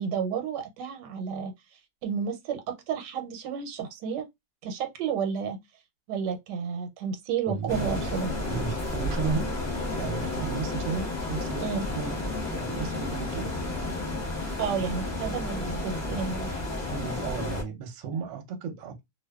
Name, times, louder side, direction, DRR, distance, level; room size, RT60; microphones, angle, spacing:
voice 1, 0.0-1.5 2.0-4.2 4.6-5.6 6.1-8.3 11.6-11.8 14.6-16.5, right 7 dB, 85° right, 1.2 m, -31 dB
voice 2, 7.5-8.1 8.5-9.5 9.9-12.1 12.5-13.5 16.9-19.0, right 5 dB, 60° right, 0.9 m, -34 dB
sound 1, 7.7-17.6, left 2 dB, 30° left, 0.9 m, -32 dB
2.5 x 2.4 x 2.2 m
omnidirectional pair, 1.8 m